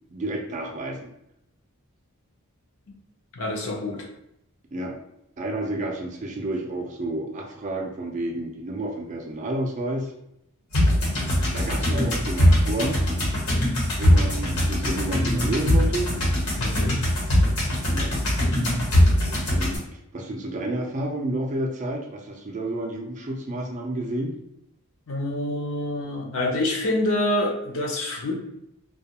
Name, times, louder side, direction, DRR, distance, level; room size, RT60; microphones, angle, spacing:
voice 1, 0.1-1.1 4.7-4.9 5.4-10.1 11.5-13.0 14.0-16.1 17.9-18.1 19.5-19.8 20.1-24.4, right 1 dB, 35° right, 1 dB, 0.3 m, -30 dB
voice 2, 3.4-4.1 16.6-17.0 25.1-28.3, left 1 dB, 70° left, -1 dB, 0.6 m, -26 dB
sound 1, 10.7-19.8, equal, 90° left, 1.1 m, -22 dB
2.2 x 2.2 x 2.8 m, 0.79 s
head